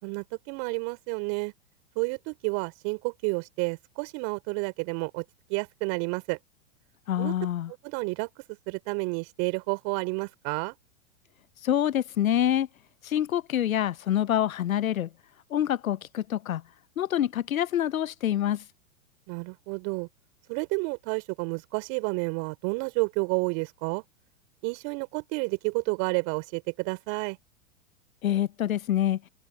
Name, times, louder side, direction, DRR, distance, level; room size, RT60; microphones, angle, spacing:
voice 1, 0.0-1.5 2.0-5.2 5.5-6.4 7.2-7.3 7.8-8.3 8.7-10.7 19.3-20.1 20.5-24.0 24.6-27.4, right 34 dB, 45° right, 4.4 m, -30 dB
voice 2, 7.1-7.7 11.6-12.7 13.1-15.1 15.5-16.6 17.0-18.6 28.2-29.2, left 11 dB, 85° left, 0.7 m, -26 dB
hypercardioid pair, 110°, 40 cm